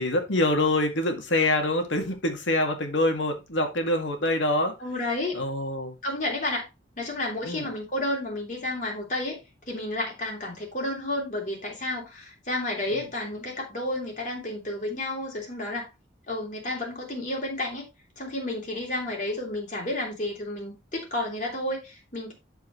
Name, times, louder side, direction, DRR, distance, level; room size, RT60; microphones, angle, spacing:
voice 1, 0.0-4.7 5.3-5.9 7.4-7.7 12.9-13.1, left 1 dB, 85° left, 1.9 m, -25 dB
voice 2, 4.8-5.4 6.0-6.6 7.0-9.4 9.7-15.9 16.3-17.9 18.2-22.3, left 1 dB, 40° left, 3.3 m, -31 dB
12.0 x 4.6 x 3.1 m
head